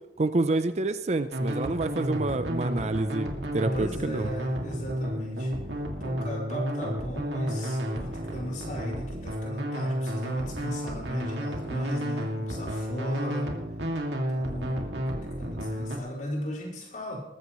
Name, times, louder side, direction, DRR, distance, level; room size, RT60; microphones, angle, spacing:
voice 1, 0.2-4.3, right 2 dB, 40° right, 11 dB, 0.5 m, -28 dB
sound 1, 1.3-16.0, equal, 80° right, 2.3 m, -32 dB
voice 2, 3.7-5.5 6.0-13.5 14.3-17.2, equal, 45° left, -2 dB, 5.2 m, -36 dB
20.5 x 14.5 x 3.1 m, 0.92 s
head